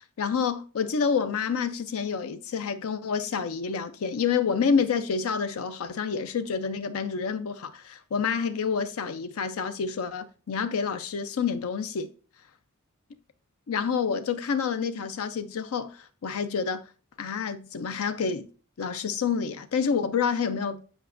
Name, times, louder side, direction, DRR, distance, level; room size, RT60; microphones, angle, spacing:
voice 1, 0.2-12.1 13.7-16.8 17.2-18.5 18.8-20.8, left 6 dB, 70° left, 0.5 m, -28 dB
7.9 x 5.0 x 2.5 m
head